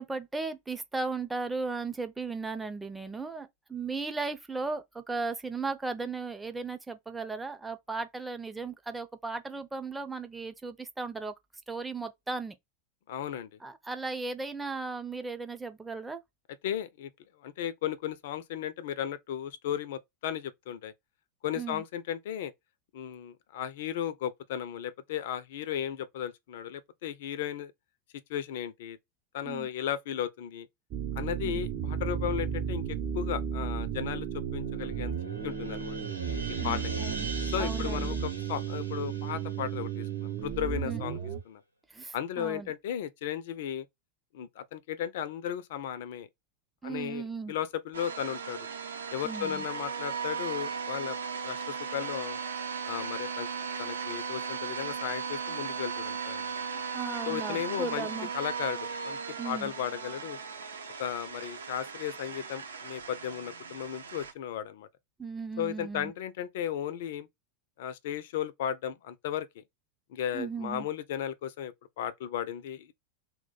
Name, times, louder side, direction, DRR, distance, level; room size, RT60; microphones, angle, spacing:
voice 1, 0.0-11.3 11.7-12.5 13.6-16.2 21.6-21.8 29.4-29.7 31.4-31.6 36.6-37.3 37.5-38.2 40.8-41.0 41.9-42.7 46.8-47.5 49.2-49.7 56.9-58.3 59.4-59.7 65.2-66.1 70.3-70.9, right 4 dB, 10° right, 0.4 m, -36 dB
voice 2, 13.1-13.5 16.6-17.1 17.4-20.9 21.4-22.5 22.9-27.7 28.3-29.0 29.3-30.7 31.2-32.8 33.1-34.3 34.5-35.1 35.4-36.0 36.6-36.8 37.5-41.2 41.5-41.6 42.1-43.9 44.3-46.3 46.8-48.7 49.1-51.2 51.4-52.4 52.9-53.5 53.8-56.7 57.2-58.1 58.3-59.2 59.4-60.4 61.0-64.9 65.6-67.3 67.8-69.6 70.1-72.9, left 10 dB, 55° left, 0.4 m, -35 dB
sound 1, 30.9-41.4, right 7 dB, 35° right, 0.8 m, -34 dB
sound 2, 34.2-40.8, right 1 dB, 90° left, 0.8 m, -42 dB
sound 3, 47.9-64.3, right 6 dB, 70° right, 0.6 m, -37 dB
2.3 x 2.1 x 3.9 m
figure-of-eight pair, 90°, 0 cm